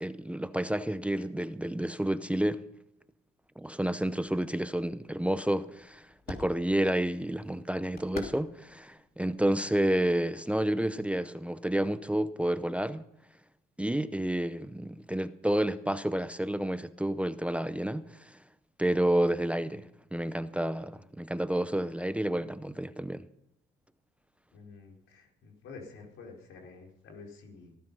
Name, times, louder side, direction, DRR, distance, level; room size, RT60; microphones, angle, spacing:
voice 1, 0.0-2.6 3.6-13.0 13.8-18.4 18.8-23.3, right 1 dB, 5° right, 0.6 m, -30 dB
sound 1, 4.1-10.4, left 4 dB, 50° left, 3.1 m, -49 dB
voice 2, 24.5-27.8, left 4 dB, 80° left, 4.3 m, -49 dB
15.5 x 14.0 x 5.5 m
cardioid pair, 90°, 20 cm